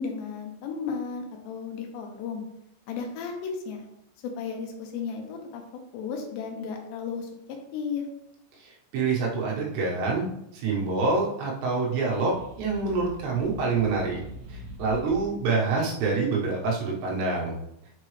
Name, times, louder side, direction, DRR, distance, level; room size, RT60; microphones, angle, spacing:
voice 1, 0.0-2.4 2.9-3.9 4.2-5.6 5.9-7.3 7.7-8.0, left 5 dB, 80° left, 3 dB, 3.1 m, -34 dB
voice 2, 8.6-10.3 10.5-14.2 14.5-17.5, right 4 dB, 75° right, -3 dB, 3.3 m, -26 dB
sound 1, 12.0-15.4, left 1 dB, 60° right, 2.1 m, -44 dB
7.5 x 4.5 x 3.2 m, 0.82 s
omnidirectional pair, 5.1 m